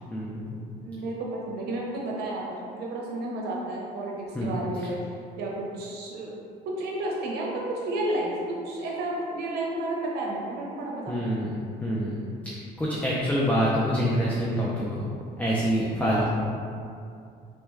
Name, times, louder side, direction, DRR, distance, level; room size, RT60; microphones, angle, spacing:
voice 1, 0.1-0.7 4.3-4.6 11.1-11.5 11.8-12.1 12.4-15.1 15.4-16.3, equal, 10° left, -6 dB, 0.4 m, -26 dB
voice 2, 0.8-6.3 6.6-11.4 16.0-16.3, right 1 dB, 75° right, -2 dB, 0.7 m, -32 dB
3.3 x 2.2 x 3.1 m, 2.4 s
cardioid pair, 110°, 17 cm